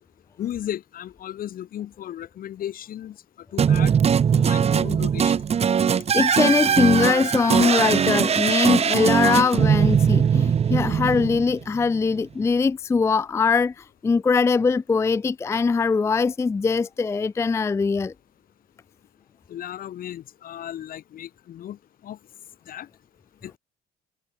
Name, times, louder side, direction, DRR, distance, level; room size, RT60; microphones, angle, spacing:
voice 1, 0.4-3.2 3.5-3.9 4.3-5.4 19.5-21.8 22.0-22.2 22.7-22.9 23.4-23.6, left 11 dB, 55° left, 1.8 m, -35 dB
sound 1, 3.6-11.8, right 7 dB, 35° right, 1.3 m, -20 dB
voice 2, 6.1-18.1, left 4 dB, 15° left, 0.4 m, -21 dB
cardioid pair, 110°, 17 cm